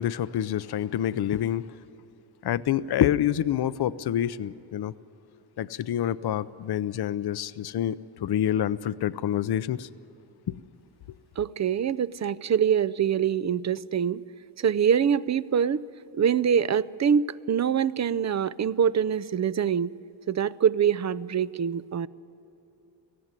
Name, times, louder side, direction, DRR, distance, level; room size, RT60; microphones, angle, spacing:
voice 1, 0.0-1.7 2.4-4.9 5.6-9.9 10.5-10.6, left 11 dB, 60° left, 0.6 m, -27 dB
voice 2, 11.4-14.2 14.6-15.8 16.1-19.9 20.3-22.1, right 8 dB, 40° right, 0.5 m, -24 dB
18.0 x 15.0 x 9.7 m
cardioid pair, 75°, 45 cm